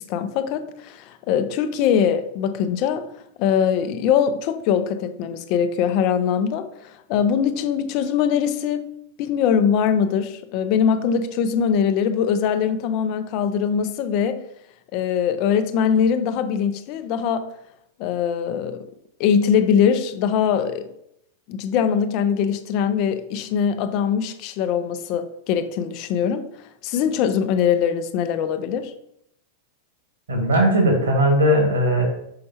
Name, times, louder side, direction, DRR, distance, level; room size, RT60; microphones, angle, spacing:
voice 1, 0.0-3.1 3.4-8.9 9.2-14.4 14.9-17.5 18.0-18.8 19.2-20.9 21.5-26.5 26.8-28.9, left 7 dB, 45° left, 0.6 m, -22 dB
voice 2, 30.3-32.0, right 1 dB, 65° right, 1.8 m, -18 dB
6.6 x 5.3 x 2.9 m
figure-of-eight pair, 90°, 0 cm